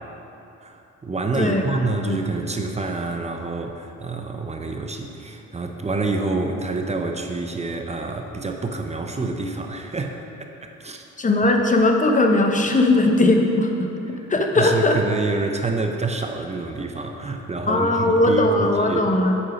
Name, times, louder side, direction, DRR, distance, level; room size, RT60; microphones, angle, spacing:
voice 1, 0.6-10.2 10.6-11.0 14.6-19.1, right 3 dB, 20° right, 4 dB, 0.6 m, -27 dB
voice 2, 11.2-13.9 14.3-15.0 17.7-19.3, left 2 dB, 25° left, 3 dB, 0.9 m, -19 dB
8.5 x 5.4 x 5.0 m, 2.9 s
cardioid pair, 90°, 30 cm